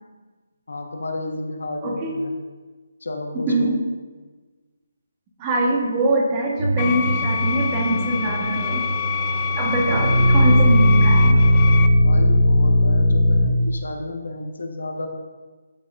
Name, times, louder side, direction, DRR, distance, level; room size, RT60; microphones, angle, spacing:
voice 1, 0.7-2.3 3.0-3.7 12.0-15.1, left 2 dB, 80° left, 3 dB, 1.1 m, -32 dB
voice 2, 1.8-2.2 3.5-3.8 5.4-8.8 9.6-11.4, right 1 dB, 25° right, 0 dB, 1.2 m, -23 dB
sound 1, 6.6-13.4, equal, 65° right, 2.2 m, -18 dB
sound 2, 6.8-11.9, left 6 dB, 25° left, 0.3 m, -27 dB
12.0 x 5.0 x 2.5 m, 1.3 s
figure-of-eight pair, 155°, 0 cm